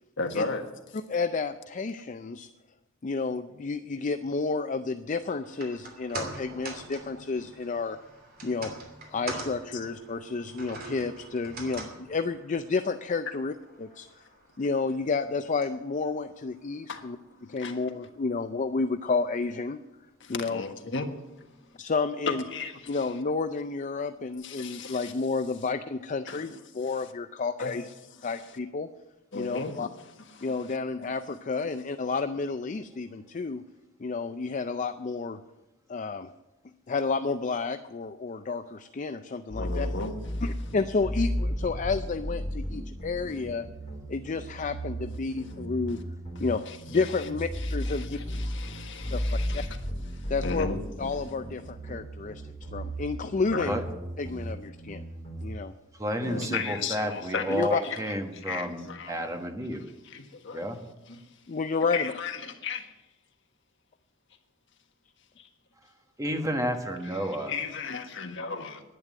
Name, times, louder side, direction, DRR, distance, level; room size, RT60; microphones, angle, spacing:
voice 1, 0.2-0.6 16.9-17.8 20.2-21.1 22.3-23.1 24.4-25.1 26.3-27.1 27.6-27.7 28.2-28.3 29.3-29.8 30.3-30.8 39.6-40.4 45.0-45.1 45.9-46.0 46.3-47.0 47.6-49.8 50.1-50.8 53.5-53.7 56.2-59.2 60.0-60.7 61.1-61.2 61.9-62.9 65.4-65.5 67.1-68.8, left 4 dB, 65° left, 5 dB, 1.4 m, -36 dB
voice 2, 1.1-2.5 3.0-8.0 8.4-8.7 9.1-13.5 13.8-14.1 14.6-17.2 17.5-19.8 20.3-20.6 21.8-22.4 22.9-27.8 28.2-28.9 29.3-29.9 30.4-33.6 34.0-35.4 35.9-36.3 36.9-39.9 40.4-43.7 44.1-46.0 46.4-46.6 46.9-48.2 49.1-49.6 50.3-50.7 51.0-52.4 52.7-53.8 54.2-55.0 55.4-55.7 57.5-57.8 61.5-62.1, left 4 dB, 40° left, 10 dB, 0.4 m, -30 dB
sound 1, 5.4-17.8 18.1-18.2, right 3 dB, 45° right, 2.8 m, -44 dB
sound 2, 39.5-55.5, equal, 20° left, 4.0 m, -35 dB
voice 3, 56.0-59.8 60.5-60.8 66.2-67.5, equal, 15° right, 5 dB, 1.3 m, -31 dB
11.0 x 9.8 x 9.3 m, 1.0 s
head